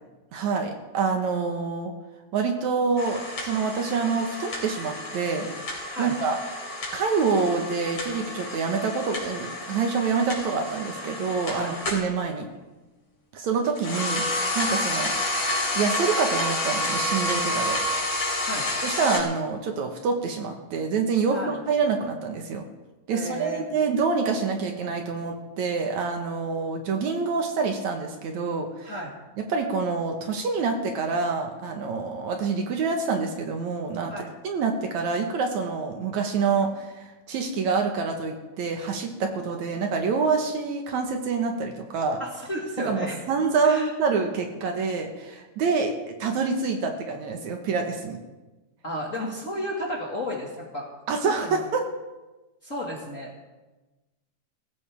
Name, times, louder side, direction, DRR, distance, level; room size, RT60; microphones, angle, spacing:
voice 1, 0.3-1.9 2.3-5.5 6.0-12.5 13.3-14.2 14.6-15.1 15.7-17.8 18.8-22.6 23.1-28.9 29.5-34.1 34.4-42.2 42.9-48.2 51.1-51.8, right 5 dB, 65° right, 3 dB, 2.4 m, -26 dB
sound 1, 3.0-12.1 13.6-19.2, left 1 dB, 50° left, 4.8 m, -30 dB
voice 2, 23.1-23.7 28.8-29.1 34.1-34.3 42.2-43.2 43.6-43.9 48.8-50.9 51.4-51.6 52.6-53.5, equal, 30° left, -3 dB, 1.7 m, -32 dB
19.5 x 16.0 x 3.5 m, 1.1 s
omnidirectional pair, 3.9 m